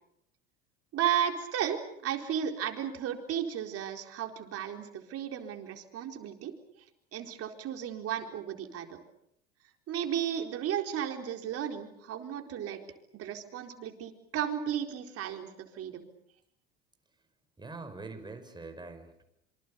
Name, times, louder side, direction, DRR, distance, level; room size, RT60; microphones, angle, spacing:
voice 1, 0.9-6.5 7.1-9.0 9.9-12.8 13.1-16.0, right 9 dB, 50° right, 4 dB, 4.3 m, -34 dB
voice 2, 17.6-19.2, right 3 dB, 15° right, 6 dB, 6.0 m, -44 dB
27.0 x 25.5 x 7.0 m, 0.76 s
hypercardioid pair, 75°, 30 cm